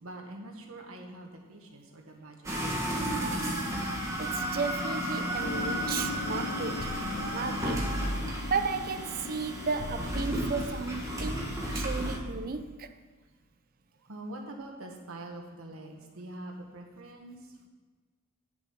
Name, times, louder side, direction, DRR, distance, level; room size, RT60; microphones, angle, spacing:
voice 1, 0.0-2.8 14.0-17.7, right 1 dB, 70° right, 1.5 m, -44 dB
sound 1, 2.4-12.2, right 1 dB, 15° right, 1.6 m, -33 dB
voice 2, 4.2-7.9 8.5-12.9, right 5 dB, 40° right, 0.5 m, -34 dB
sound 2, 5.4-12.2, left 4 dB, 50° left, 0.4 m, -40 dB
9.1 x 6.9 x 5.8 m
head